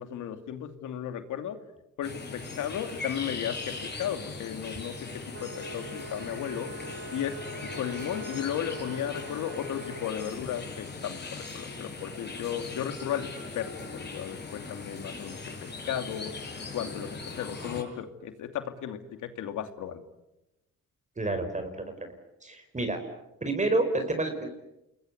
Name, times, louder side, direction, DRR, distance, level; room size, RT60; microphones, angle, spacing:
voice 1, 0.0-1.6 2.0-16.4 16.7-20.0, left 9 dB, 80° left, 8 dB, 2.7 m, -35 dB
sound 1, 2.0-17.8, left 3 dB, 35° left, 7.3 m, -40 dB
sound 2, 5.3-10.2, right 1 dB, 45° right, 3.2 m, -43 dB
voice 2, 21.2-21.9 22.4-23.0 23.4-24.5, right 2 dB, 25° right, 6 dB, 5.0 m, -29 dB
29.0 x 21.5 x 9.5 m, 0.92 s
cardioid pair, 90°, 30 cm